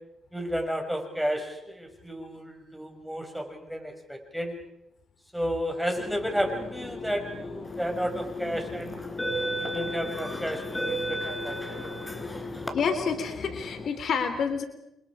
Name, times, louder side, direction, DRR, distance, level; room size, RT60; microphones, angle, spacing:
voice 1, 0.3-4.5 5.3-9.1 9.6-11.8, equal, ahead, 3 dB, 6.2 m, -32 dB
sound 1, 5.9-13.9, left 4 dB, 40° left, 5.2 m, -39 dB
sound 2, 7.9-8.2 8.9-12.7, right 1 dB, 15° left, 4.1 m, -33 dB
voice 2, 12.7-14.6, left 6 dB, 60° left, 8 dB, 3.3 m, -28 dB
29.5 x 26.5 x 4.9 m, 0.84 s
cardioid pair, 90°, 0 cm